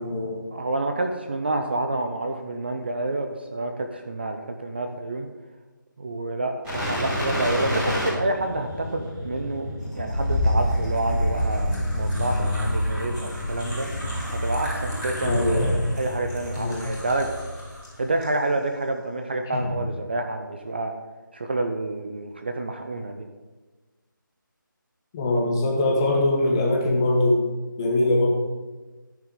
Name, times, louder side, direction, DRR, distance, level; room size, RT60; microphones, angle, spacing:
voice 1, 0.0-0.4 15.2-15.7 16.6-16.8 19.5-19.7 25.1-27.4 27.8-28.3, left 1 dB, 10° left, -1 dB, 0.8 m, -22 dB
voice 2, 0.5-5.3 6.0-9.7 9.9-13.9 14.4-15.4 16.0-17.3 18.0-20.9 21.3-23.2, right 2 dB, 30° right, 5 dB, 0.5 m, -28 dB
sound 1, 6.6-17.9 18.2-18.3, equal, 5° right, 2.6 m, -27 dB
13.5 x 6.1 x 3.7 m, 1.3 s
figure-of-eight pair, 170°, 11 cm